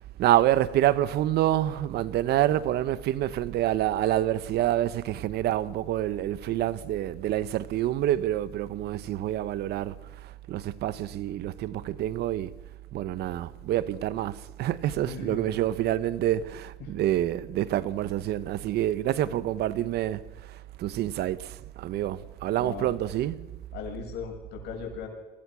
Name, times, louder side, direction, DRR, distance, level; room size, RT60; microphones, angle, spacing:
voice 1, 0.2-12.5 12.9-23.5, right 13 dB, 75° right, 1.1 m, -27 dB
voice 2, 15.0-15.5 16.8-16.9 22.6-22.9 23.7-25.1, left 7 dB, 80° left, 7.3 m, -38 dB
29.0 x 23.5 x 6.3 m
cardioid pair, 110°, 17 cm